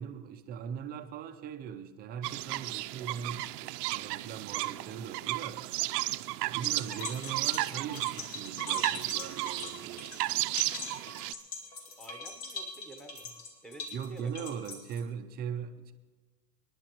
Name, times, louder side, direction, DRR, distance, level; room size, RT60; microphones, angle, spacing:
voice 1, 0.0-5.7 6.5-10.1 13.9-15.9, right 7 dB, 20° right, 7 dB, 0.4 m, -40 dB
sound 1, 2.2-11.3, right 18 dB, 75° right, 0.6 m, -34 dB
sound 2, 6.6-15.0, left 4 dB, 75° left, 2.6 m, -42 dB
voice 2, 12.0-13.3 13.6-14.8, right 2 dB, ahead, 4 dB, 0.9 m, -50 dB
28.5 x 10.5 x 3.0 m, 1.3 s
supercardioid pair, 140°, 49 cm